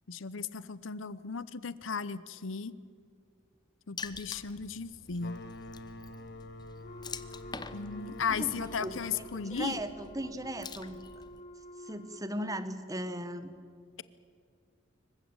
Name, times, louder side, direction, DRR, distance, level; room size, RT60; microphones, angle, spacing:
voice 1, 0.1-2.7 3.9-5.4 7.7-9.8, left 5 dB, 80° left, 17 dB, 0.8 m, -36 dB
Water / Splash splatter, 4.0-11.4, left 4 dB, 20° left, 0.8 m, -47 dB
sound 1, 5.2-10.6, left 1 dB, 55° left, 1.2 m, -47 dB
Wind instrument woodwind instrument, 6.8-12.6, equal, 40° left, 1.3 m, -50 dB
voice 2, 8.3-11.0 11.8-13.5, right 1 dB, 20° right, 11 dB, 1.2 m, -38 dB
25.5 x 15.5 x 8.9 m, 2.2 s
head